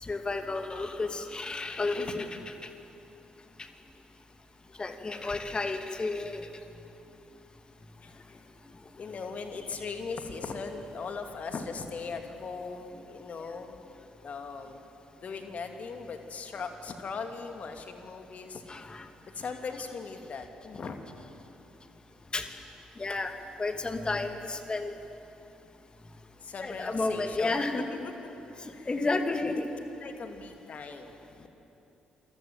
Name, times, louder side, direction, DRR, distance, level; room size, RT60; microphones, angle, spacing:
voice 1, 0.0-2.7 4.8-6.5 18.7-19.1 22.3-22.5 23.0-23.3 23.6-24.9 26.6-27.9 28.6-29.7, left 3 dB, 25° left, 6 dB, 2.5 m, -32 dB
voice 2, 2.0-2.4 8.0-8.4 9.0-13.8 14.2-14.8 15.2-18.6 19.3-21.0 26.4-27.7 28.0-28.1 28.7-28.9 30.0-31.5, left 4 dB, 45° left, 5 dB, 2.7 m, -39 dB
27.5 x 24.5 x 7.6 m, 2.9 s
figure-of-eight pair, 45°, 3 cm